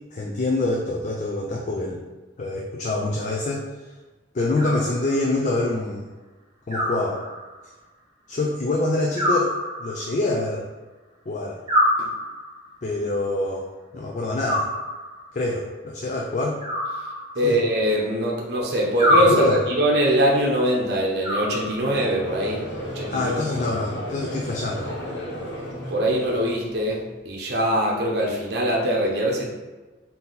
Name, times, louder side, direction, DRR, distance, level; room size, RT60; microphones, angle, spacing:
voice 1, 0.1-2.0 2.4-3.7 4.3-6.1 6.7-7.2 8.3-9.5 9.8-10.7 11.3-11.6 12.8-13.7 13.9-14.7 15.3-16.6 17.4-17.6 19.3-19.6 23.1-24.9, left 2 dB, 40° left, -1 dB, 0.4 m, -25 dB
Animal, 4.6-5.4 6.7-7.7 9.2-10.2 11.7-12.7 14.4-15.3 16.6-17.7 19.0-19.9 21.2-22.1, equal, 20° right, 1.2 m, -25 dB
voice 2, 17.4-22.6 22.9-23.6 25.9-29.5, equal, 55° right, -2 dB, 0.7 m, -22 dB
Conversation / Crowd, 21.7-27.0, equal, 65° left, 0.9 m, -34 dB
3.8 x 2.8 x 3.9 m, 1.2 s
head